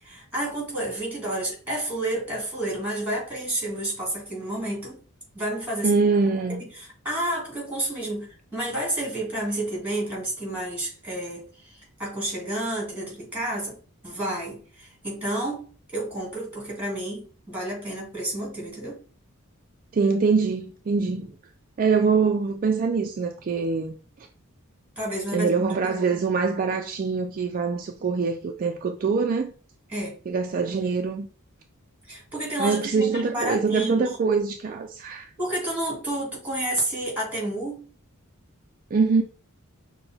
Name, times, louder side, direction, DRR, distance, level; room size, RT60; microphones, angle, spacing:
voice 1, 0.0-5.0 5.3-6.0 6.5-13.7 14.0-15.6 15.9-19.0 25.0-26.0 29.9-30.2 32.1-34.1 35.4-37.8, right 1 dB, 5° right, 2.2 m, -30 dB
voice 2, 5.8-6.7 19.9-21.3 21.8-24.0 25.3-29.5 30.3-31.3 32.6-35.3 38.9-39.2, right 4 dB, 40° right, 0.3 m, -24 dB
6.0 x 2.1 x 3.5 m
head